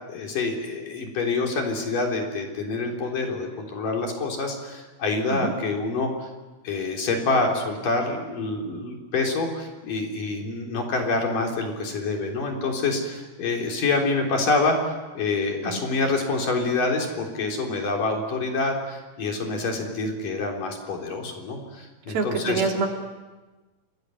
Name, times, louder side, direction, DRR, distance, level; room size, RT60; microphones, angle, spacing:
voice 1, 0.1-6.1 6.6-22.6, left 3 dB, 60° left, 1 dB, 5.2 m, -26 dB
voice 2, 22.1-22.9, right 4 dB, 70° right, 1 dB, 5.0 m, -26 dB
28.5 x 20.0 x 9.5 m, 1.2 s
omnidirectional pair, 4.4 m